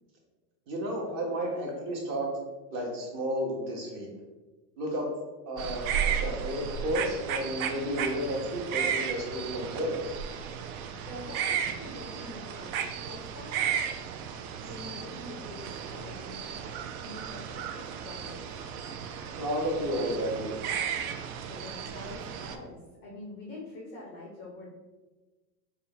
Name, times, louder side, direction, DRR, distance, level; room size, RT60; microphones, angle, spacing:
voice 1, 0.7-2.3 2.7-4.1 4.8-5.1 5.5-10.0 19.4-20.5, equal, 35° right, -1 dB, 1.0 m, -32 dB
sound 1, 5.6-22.6, right 8 dB, 60° right, 0.5 m, -34 dB
voice 2, 11.0-13.8 14.6-18.6 21.5-24.7, left 2 dB, 25° left, -4 dB, 0.4 m, -45 dB
4.3 x 2.3 x 3.8 m, 1.2 s
supercardioid pair, 150°, 49 cm